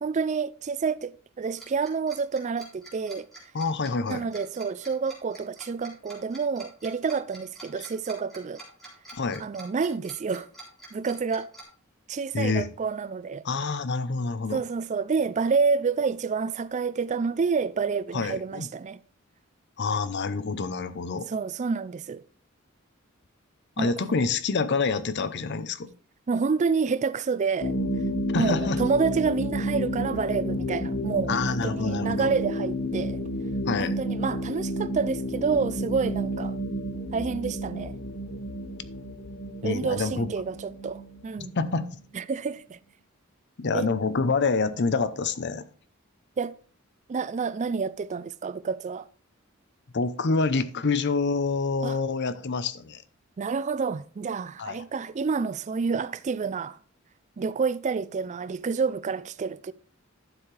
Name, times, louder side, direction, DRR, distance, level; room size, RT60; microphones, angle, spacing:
voice 1, 0.0-3.3 4.1-8.6 9.4-10.5 10.9-11.5 12.1-13.4 14.5-19.0 21.3-22.2 23.8-23.9 26.3-27.8 28.3-33.2 33.8-36.6 37.1-37.9 39.6-41.5 42.1-42.8 43.7-43.9 46.4-46.5 47.1-49.1 51.8-52.0 53.4-56.8 57.4-59.7, right 5 dB, 35° right, 0.4 m, -28 dB
Tick-tock, 1.6-11.6, right 2 dB, ahead, 3.6 m, -46 dB
voice 2, 3.5-4.3 9.1-9.4 12.3-12.7 13.4-14.6 18.1-18.7 19.8-21.3 23.8-25.9 28.3-28.8 31.3-32.3 33.7-34.0 39.6-40.3 41.4-42.0 43.6-45.6 49.9-53.0 54.6-54.8, left 4 dB, 55° left, 0.7 m, -27 dB
sound 1, 27.6-42.0, equal, 85° left, 1.0 m, -31 dB
12.0 x 7.1 x 3.3 m
head